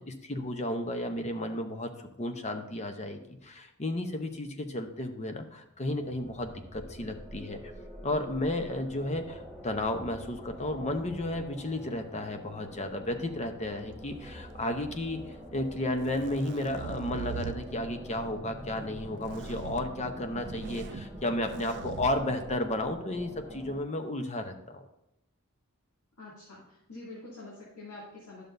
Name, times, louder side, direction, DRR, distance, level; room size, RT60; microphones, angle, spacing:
voice 1, 0.0-7.6 8.0-24.8, left 1 dB, 30° left, 6 dB, 0.8 m, -33 dB
sound 1, 5.8-23.8, equal, ahead, 2.2 m, -45 dB
sound 2, 14.0-14.8 15.7-17.6 19.2-19.8 20.3-21.1 21.4-22.1, right 7 dB, 55° right, 0.3 m, -41 dB
voice 2, 26.2-28.4, left 2 dB, 75° left, -7 dB, 2.4 m, -46 dB
11.0 x 6.6 x 2.6 m, 0.84 s
head